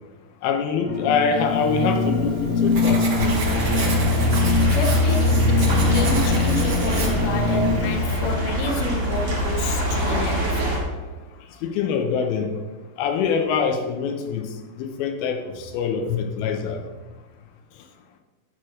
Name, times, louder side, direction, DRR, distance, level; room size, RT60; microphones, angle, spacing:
voice 1, 0.4-3.4 11.6-12.5 13.0-14.5 14.8-16.8, left 6 dB, 90° left, 2.8 m, -24 dB
sound 1, 0.8-7.9, left 3 dB, 25° left, 2.2 m, -24 dB
Writing, 1.6-8.3, right 3 dB, 80° right, 0.9 m, -33 dB
sound 2, 3.2-10.8, left 1 dB, 20° right, 1.8 m, -22 dB
voice 2, 4.7-10.7 11.4-11.5, left 2 dB, 70° left, 2.4 m, -29 dB
11.0 x 4.5 x 6.3 m
omnidirectional pair, 4.3 m